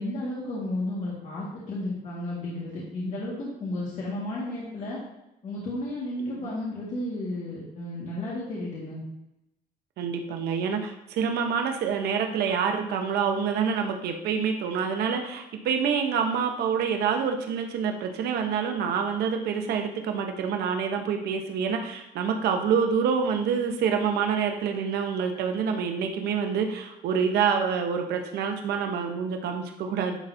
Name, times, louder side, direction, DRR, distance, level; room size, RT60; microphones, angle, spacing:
voice 1, 0.0-5.0 5.4-9.0, left 1 dB, 45° left, -6 dB, 1.9 m, -33 dB
voice 2, 10.0-30.2, right 6 dB, 75° right, 4 dB, 1.0 m, -27 dB
10.5 x 4.1 x 2.8 m, 0.90 s
cardioid pair, 110°, 17 cm